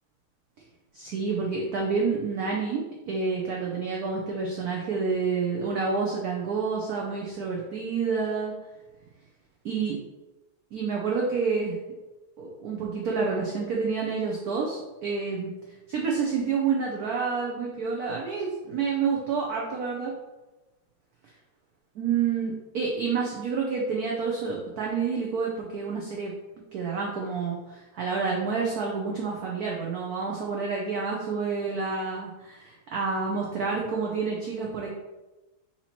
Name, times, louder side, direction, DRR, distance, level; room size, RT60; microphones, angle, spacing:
voice 1, 0.9-8.5 9.6-10.0 10.7-11.8 12.4-15.5 15.9-20.1 22.0-26.3 26.7-34.9, right 5 dB, 85° right, -2 dB, 0.8 m, -29 dB
4.2 x 2.8 x 4.3 m, 1.1 s
omnidirectional pair, 2.4 m